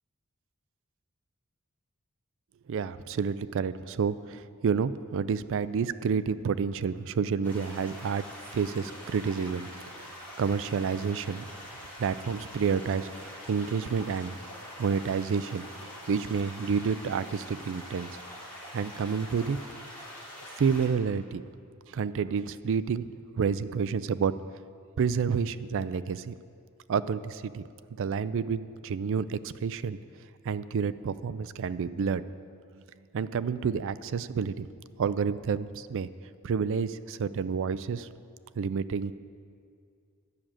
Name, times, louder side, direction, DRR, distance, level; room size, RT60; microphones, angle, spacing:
voice 1, 2.7-8.3 8.5-9.7 10.0-11.5 12.0-14.3 14.8-18.1 18.7-19.6 20.6-21.4 21.9-23.1 23.4-24.3 25.0-26.3 26.9-27.6 28.0-30.0 30.4-32.2 32.7-32.8 33.1-34.7 35.0-36.1 36.4-38.1 38.6-39.1, right 6 dB, 65° right, 15 dB, 0.4 m, -29 dB
sound 1, 7.4-20.9, equal, 10° left, 3.4 m, -44 dB
11.0 x 6.2 x 8.7 m, 2.3 s
head